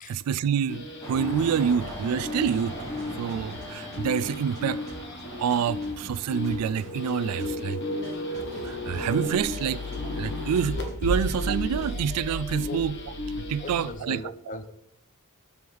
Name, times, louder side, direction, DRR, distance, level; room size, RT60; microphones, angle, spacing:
voice 1, 0.1-2.8 3.2-4.8 5.2-7.8 8.6-13.0 13.5-14.2, right 7 dB, 90° right, 0.3 m, -27 dB
sound 1, 0.7-13.9, left 2 dB, 55° left, 1.2 m, -34 dB
sound 2, 1.0-10.6, right 1 dB, 15° left, 1.6 m, -42 dB
sound 3, 2.3-4.6 4.9-7.1 7.4-7.7 8.0-9.6 9.9-10.3 10.5-12.2, equal, 30° right, 1.2 m, -46 dB
voice 2, 13.6-14.7, left 3 dB, 35° left, 0.5 m, -38 dB
6.0 x 4.7 x 3.5 m
head